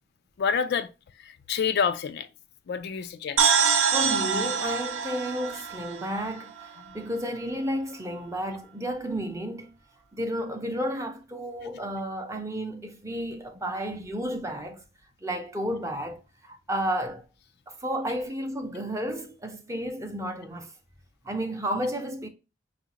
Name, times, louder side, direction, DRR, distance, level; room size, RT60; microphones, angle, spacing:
voice 1, 0.4-0.9 1.2-2.3 2.7-3.5, left 6 dB, 55° left, 0.3 m, -28 dB
sound 1, 3.4-7.0, right 6 dB, 70° right, 0.5 m, -25 dB
voice 2, 3.8-9.7 10.1-14.8 15.2-17.2 17.7-20.7 21.2-22.3, equal, 15° right, 0.6 m, -32 dB
5.6 x 2.5 x 2.9 m
head